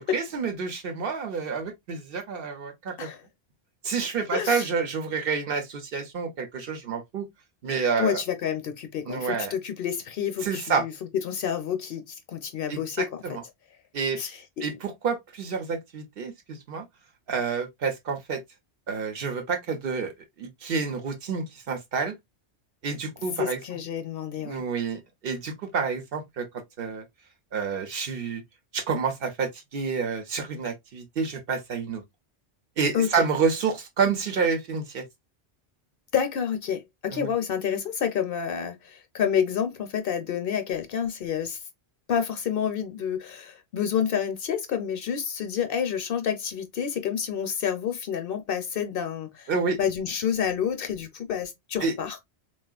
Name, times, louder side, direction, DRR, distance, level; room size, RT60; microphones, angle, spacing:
voice 1, 0.1-3.1 3.8-7.3 7.6-8.2 9.1-9.5 10.4-10.8 12.7-13.4 13.9-14.2 14.6-16.8 17.3-18.4 18.9-20.1 20.4-22.2 22.8-23.6 24.4-26.4 26.8-27.0 27.5-28.4 28.7-32.0 32.8-35.0 37.1-37.3 49.5-49.8 51.8-51.9, right 5 dB, 60° right, 0.9 m, -28 dB
voice 2, 4.3-4.7 8.0-10.9 11.2-13.4 14.2-14.7 23.4-24.6 32.9-33.3 36.1-41.6 42.1-49.5 49.8-52.2, left 8 dB, 60° left, 0.7 m, -29 dB
3.6 x 2.3 x 2.3 m
omnidirectional pair, 1.1 m